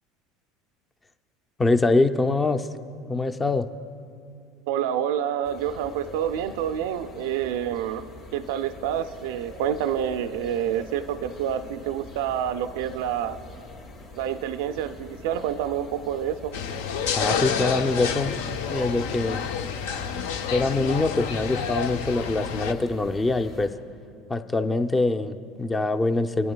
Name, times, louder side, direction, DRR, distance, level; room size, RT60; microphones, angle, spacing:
voice 1, 1.6-2.7 3.1-3.7 17.2-18.4 18.7-19.4 20.5-23.7 24.3-26.5, left 2 dB, 15° left, 9 dB, 0.4 m, -24 dB
voice 2, 4.7-8.0 8.3-13.4 14.1-16.5, right 9 dB, 75° right, 10 dB, 0.3 m, -28 dB
sound 1, 5.4-23.7, left 2 dB, 60° left, 2.8 m, -43 dB
sound 2, 16.5-22.7, left 7 dB, 80° left, 0.5 m, -29 dB
20.0 x 11.0 x 2.2 m, 2.4 s
supercardioid pair, 100°, 0 cm